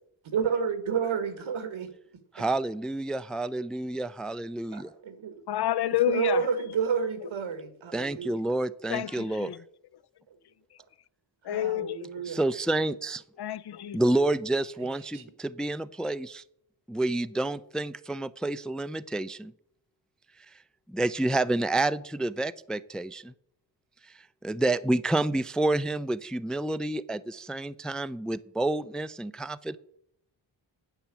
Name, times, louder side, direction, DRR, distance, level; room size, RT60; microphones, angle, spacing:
voice 1, 0.2-1.9 2.4-2.5 4.7-5.3 6.1-8.3 11.5-12.4 15.1-15.2, right 6 dB, 80° right, 1.6 m, -30 dB
voice 2, 2.3-4.9 7.9-9.5 12.3-13.2 13.9-16.4 16.9-19.5 20.9-23.3 24.4-29.8, right 2 dB, ahead, 0.3 m, -29 dB
voice 3, 5.5-6.4 8.9-9.6 11.5-12.3 13.4-14.0, left 13 dB, 55° left, 0.5 m, -29 dB
9.1 x 5.7 x 8.2 m
cardioid pair, 60°, 47 cm